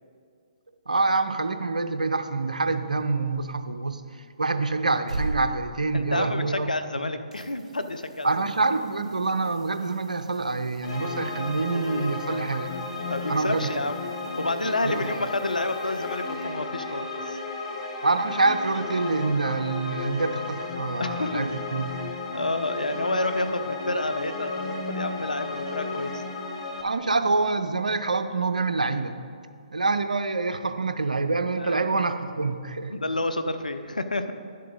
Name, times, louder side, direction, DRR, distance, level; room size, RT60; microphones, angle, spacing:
voice 1, 0.9-4.0 4.4-6.7 8.2-12.7 13.3-13.7 14.8-15.1 18.0-21.9 26.8-29.1 29.7-32.9, right 3 dB, 80° right, 9 dB, 0.6 m, -26 dB
sound 1, 4.8-6.9 7.3-16.9 19.7-19.8, right 2 dB, 55° right, 1.1 m, -41 dB
voice 2, 5.9-8.5 13.1-14.0 14.4-17.4 21.0-21.6 22.3-26.2 31.6-31.8 32.9-34.3, left 2 dB, 85° left, 9 dB, 0.6 m, -29 dB
sound 2, 10.8-26.8, left 3 dB, 50° left, 1.4 m, -34 dB
10.5 x 7.5 x 4.0 m, 2.3 s
figure-of-eight pair, 135°, 4 cm